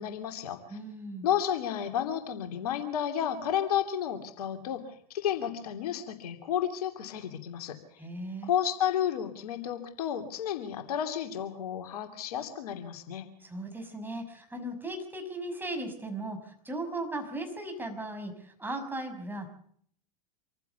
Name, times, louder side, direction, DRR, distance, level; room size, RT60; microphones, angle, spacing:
voice 1, 0.0-0.8 1.2-7.8 8.4-13.3, left 9 dB, 70° left, 6 dB, 2.9 m, -32 dB
voice 2, 0.7-1.3 8.0-8.5 13.4-19.5, right 1 dB, 10° right, 5 dB, 6.1 m, -37 dB
26.5 x 15.0 x 7.0 m, 0.63 s
hypercardioid pair, 85°, 20 cm